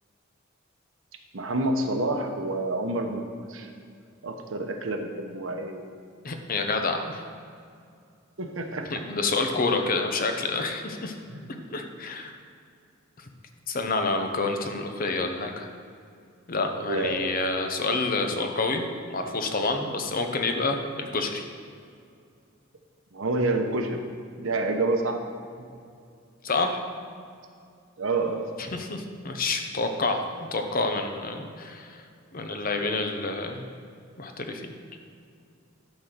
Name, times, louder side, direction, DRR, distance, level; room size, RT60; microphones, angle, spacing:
voice 1, 1.3-3.7 4.2-5.8 8.4-8.9 11.3-11.4 16.9-17.3 23.1-24.0 24.4-25.2 28.0-28.5, right 2 dB, 75° right, 4 dB, 1.0 m, -28 dB
voice 2, 6.2-7.2 8.9-11.1 11.7-12.3 13.2-13.3 13.7-15.7 16.5-18.8 19.1-21.4 26.4-26.8 28.6-30.2 30.5-32.0 32.3-33.6 34.2-34.7, left 3 dB, 45° left, 5 dB, 0.9 m, -28 dB
12.0 x 4.2 x 6.6 m, 2.4 s
head